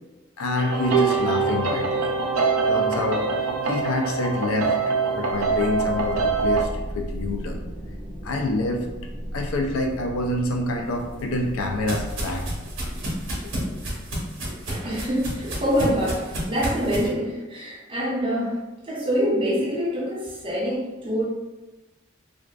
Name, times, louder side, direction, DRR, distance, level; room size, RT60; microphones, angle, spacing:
voice 1, 0.4-2.1 2.7-3.3 3.6-4.8 5.1-7.6 8.2-8.9 9.3-12.5 13.4-13.7 14.1-14.2, left 2 dB, 90° left, 3 dB, 0.4 m, -27 dB
sound 1, 0.6-6.6, right 4 dB, 85° right, 0.3 m, -24 dB
sound 2, 5.3-16.6, equal, 40° left, 0.9 m, -37 dB
sound 3, 11.0-17.1, right 1 dB, 65° right, 0.7 m, -31 dB
voice 2, 14.7-18.6 18.8-21.2, equal, 25° right, -5 dB, 0.5 m, -25 dB
2.5 x 2.3 x 2.2 m, 1.1 s
head